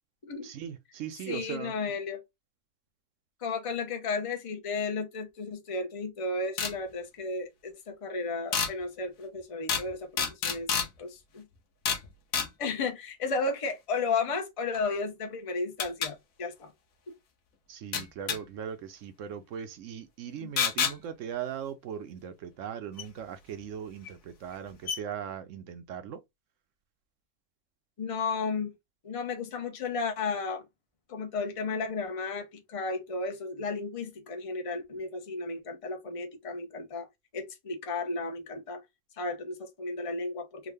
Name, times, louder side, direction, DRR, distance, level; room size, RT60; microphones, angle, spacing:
voice 1, 0.4-1.7 17.7-26.2, right 8 dB, 65° right, 0.8 m, -39 dB
voice 2, 1.3-2.2 3.4-11.5 12.6-16.7 20.3-20.5 28.0-28.7 29.0-30.6 31.1-37.1 37.3-38.8 39.2-40.7, left 4 dB, 45° left, 0.4 m, -34 dB
sound 1, 6.6-6.7 8.5-8.7 9.7-9.9 10.2-10.9 11.9-12.1 12.3-12.5 14.7-14.8 15.8-16.1 17.9-18.4 20.6-21.0 23.0-23.1 24.1-24.2 24.5-24.6 24.9-25.0, left 6 dB, 60° left, 1.2 m, -28 dB
3.6 x 2.2 x 3.3 m
omnidirectional pair, 1.7 m